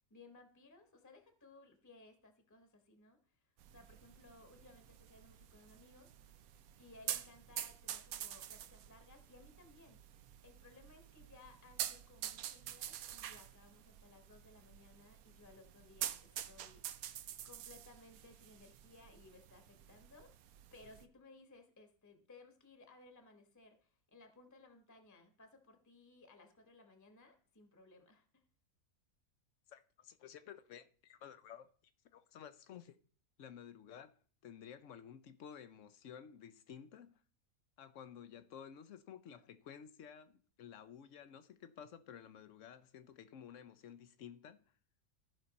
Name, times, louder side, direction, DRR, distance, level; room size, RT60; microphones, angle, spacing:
voice 1, 0.1-3.2 3.7-6.1 6.8-10.0 10.4-17.2 17.4-20.3 20.7-28.4, left 3 dB, 15° left, 1.1 m, -61 dB
sound 1, 3.6-21.0, right 11 dB, 80° right, 1.1 m, -47 dB
voice 2, 29.7-31.7 32.1-33.0 33.4-34.2 34.4-37.2 37.8-44.6, left 8 dB, 65° left, 0.9 m, -53 dB
14.0 x 5.6 x 4.0 m
omnidirectional pair, 1.5 m